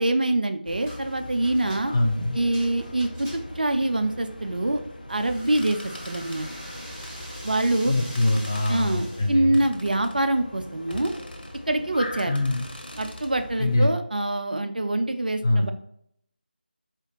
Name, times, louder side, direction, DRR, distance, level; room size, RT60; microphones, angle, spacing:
voice 1, 0.0-1.9 2.3-4.8 5.1-6.5 7.4-7.9 8.7-11.1 11.7-12.3 13.0-15.7, right 1 dB, 60° right, 7 dB, 0.4 m, -25 dB
sound 1, 0.6-13.8, left 1 dB, 55° left, 0.9 m, -41 dB
sound 2, 0.9-1.1 1.4-3.7 5.1-9.3, equal, 15° right, 0.8 m, -43 dB
voice 2, 1.9-2.4 7.9-9.6 12.3-12.7 13.6-13.9 15.4-15.7, left 2 dB, 20° left, 1 dB, 0.4 m, -23 dB
sound 3, 5.5-6.4 7.0-7.6 8.2-8.8 9.5-10.2 10.9-11.6 12.2-13.3, left 1 dB, 75° left, 1.4 m, -46 dB
4.8 x 2.5 x 3.0 m, 0.69 s
figure-of-eight pair, 165°, 5 cm